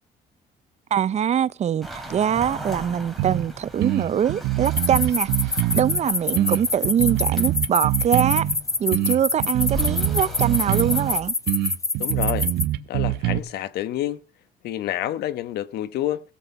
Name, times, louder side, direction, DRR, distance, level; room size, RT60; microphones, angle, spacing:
voice 1, 0.9-8.5 8.8-11.3, right 9 dB, 40° right, 0.6 m, -23 dB
sound 1, 1.8-11.2, equal, ahead, 3.6 m, -39 dB
sound 2, 3.2-3.5 3.8-6.0 6.4-8.6 8.9-11.1 11.5-13.4, right 15 dB, 85° right, 1.0 m, -24 dB
sound 3, 4.6-12.6, left 3 dB, 20° left, 0.9 m, -25 dB
voice 2, 12.0-12.5 12.9-14.2 14.6-16.2, left 13 dB, 75° left, 1.1 m, -28 dB
17.0 x 7.8 x 5.4 m
cardioid pair, 110°, 17 cm